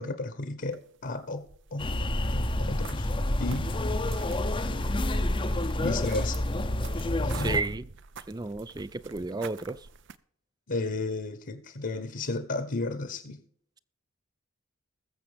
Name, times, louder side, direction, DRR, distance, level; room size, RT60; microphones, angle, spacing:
voice 1, 0.0-1.4 1.7-1.9 2.3-3.1 3.4-3.7 5.8-6.4 7.2-7.6 10.7-13.4, left 2 dB, 55° left, 1.2 m, -33 dB
sound 1, 0.7-1.9 2.1-10.2, right 4 dB, 60° right, 0.6 m, -45 dB
sound 2, 1.8-7.6, left 1 dB, 25° left, 0.7 m, -28 dB
voice 2, 7.3-7.9 8.3-9.9, right 3 dB, 20° right, 0.4 m, -32 dB
21.0 x 7.3 x 3.5 m
head